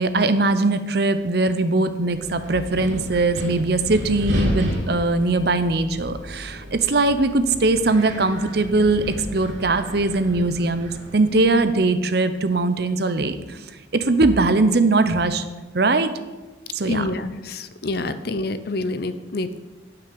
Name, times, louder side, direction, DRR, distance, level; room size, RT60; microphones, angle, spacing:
voice 1, 0.0-13.6 13.9-15.4 15.7-16.1 16.7-17.1, right 2 dB, 55° right, 11 dB, 0.7 m, -20 dB
Wind, 2.1-11.6, equal, 80° right, 2.7 m, -32 dB
voice 2, 16.9-19.6, left 2 dB, 55° left, 11 dB, 0.6 m, -27 dB
12.5 x 5.9 x 6.9 m, 1.2 s
head